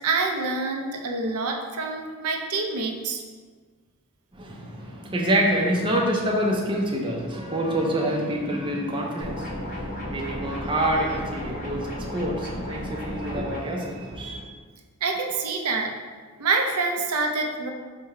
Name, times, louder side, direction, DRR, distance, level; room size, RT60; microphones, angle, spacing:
voice 1, 0.0-3.2 15.0-15.9 16.4-17.7, right 3 dB, 75° right, 2 dB, 0.5 m, -26 dB
voice 2, 4.3-14.4, right 1 dB, 20° right, -1 dB, 0.5 m, -27 dB
sound 1, 9.2-13.6, left 1 dB, 35° left, 1.0 m, -34 dB
4.6 x 2.1 x 4.7 m, 1.5 s
head